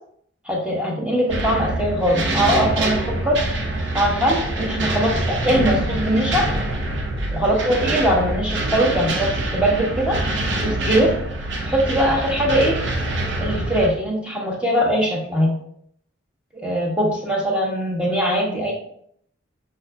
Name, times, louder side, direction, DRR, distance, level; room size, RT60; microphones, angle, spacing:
voice 1, 0.4-3.4 3.9-6.5 7.3-10.2 10.6-11.1 11.6-12.8 13.4-15.5 16.6-18.7, equal, 5° right, -3 dB, 1.0 m, -21 dB
sound 1, 1.3-13.9, right 1 dB, 70° right, 0.6 m, -25 dB
4.9 x 4.1 x 2.2 m, 0.67 s
head